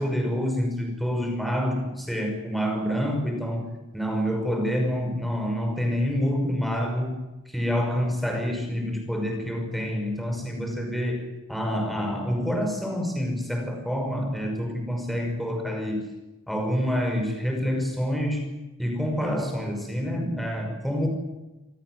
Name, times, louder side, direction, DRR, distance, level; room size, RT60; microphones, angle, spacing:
voice 1, 0.0-7.2 7.5-16.1 16.5-18.5 18.8-21.1, equal, ahead, 3 dB, 5.8 m, -27 dB
26.5 x 18.5 x 8.1 m, 1.0 s
head